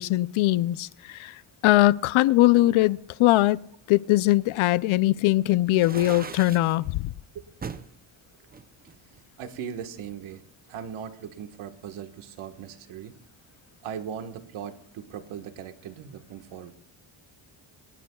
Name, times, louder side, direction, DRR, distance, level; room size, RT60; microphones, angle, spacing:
voice 1, 0.0-3.6 3.9-7.1, left 17 dB, 80° left, 0.6 m, -21 dB
sound 1, 5.7-6.8 7.6-7.9 8.5-9.6, right 5 dB, 20° right, 0.5 m, -39 dB
voice 2, 9.4-10.4 10.7-13.1 13.8-16.7, right 8 dB, 85° right, 1.5 m, -38 dB
25.0 x 19.5 x 2.3 m
cardioid pair, 140°, 48 cm